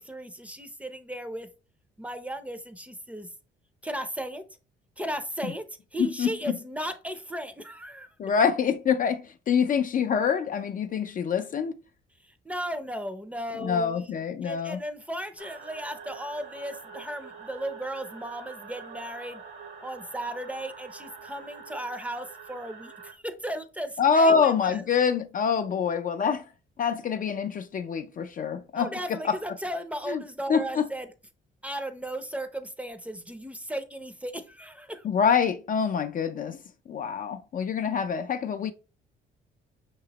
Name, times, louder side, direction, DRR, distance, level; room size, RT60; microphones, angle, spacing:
voice 1, 0.0-1.5 2.0-3.3 3.8-4.4 5.0-5.6 5.9-8.1 12.4-14.1 14.4-19.4 19.8-24.8 28.8-31.1 31.6-35.0, right 1 dB, 5° right, 0.5 m, -36 dB
voice 2, 6.0-6.6 8.2-11.7 13.6-14.8 24.0-26.4 26.8-29.4 30.1-30.2 30.5-30.9 35.0-36.6 36.9-38.7, left 6 dB, 45° left, 0.4 m, -25 dB
sound 1, 15.4-23.1, right 5 dB, 70° right, 1.2 m, -45 dB
5.7 x 2.9 x 2.8 m
cardioid pair, 90°, 20 cm